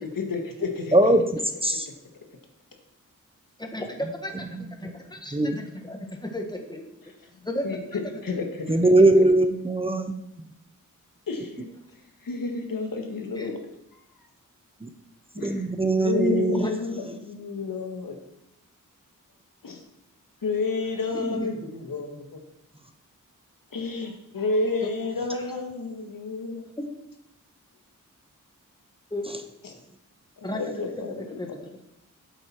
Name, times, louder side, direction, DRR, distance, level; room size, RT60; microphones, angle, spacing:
voice 1, 0.2-0.9 7.6-7.8 8.2-8.8 11.3-11.7 12.2-13.5 15.4-15.6 16.0-18.2 19.6-19.8 20.4-22.4 23.7-26.6 29.6-29.7 30.4-31.4, left 3 dB, 90° left, 3 dB, 1.8 m, -30 dB
voice 2, 0.9-1.2 1.6-1.9 4.4-4.9 5.3-5.6 8.7-10.1 14.8-14.9 15.3-17.0 29.3-29.4, right 2 dB, 15° right, 7 dB, 0.7 m, -21 dB
voice 3, 3.6-6.8 7.5-7.6 13.4-13.5 16.5-16.7 21.1-21.5 24.8-24.9 29.1-29.2 30.4-30.6 31.4-31.6, left 1 dB, 15° left, 2 dB, 1.6 m, -33 dB
11.5 x 7.9 x 4.5 m, 0.82 s
wide cardioid pair, 115°, 33 cm